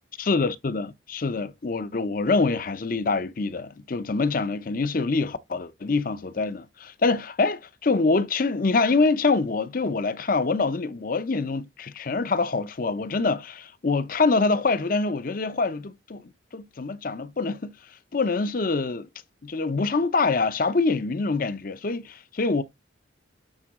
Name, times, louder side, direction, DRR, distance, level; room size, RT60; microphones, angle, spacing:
voice 1, 0.2-17.8 18.1-19.1 19.4-22.6, left 3 dB, 45° left, 0.6 m, -25 dB
8.9 x 3.8 x 3.6 m
head